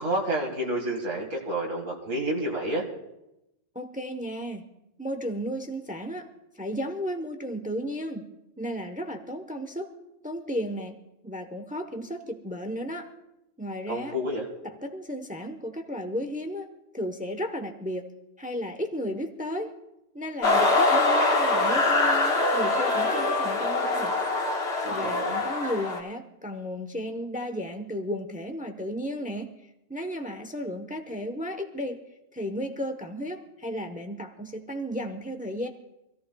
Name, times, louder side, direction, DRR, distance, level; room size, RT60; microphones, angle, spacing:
voice 1, 0.0-2.9 13.9-14.5 24.8-25.4, right 1 dB, 80° right, -1 dB, 2.4 m, -29 dB
voice 2, 3.7-4.7 5.0-6.3 6.6-8.3 8.6-9.9 10.2-11.0 11.2-13.1 13.6-14.1 14.6-16.7 16.9-18.1 18.4-19.7 20.1-24.1 24.9-29.5 29.9-32.0 32.3-35.7, equal, 5° right, 6 dB, 0.8 m, -34 dB
sound 1, 20.4-26.0, left 2 dB, 55° left, 1.7 m, -24 dB
26.5 x 14.5 x 2.3 m, 0.90 s
omnidirectional pair, 1.3 m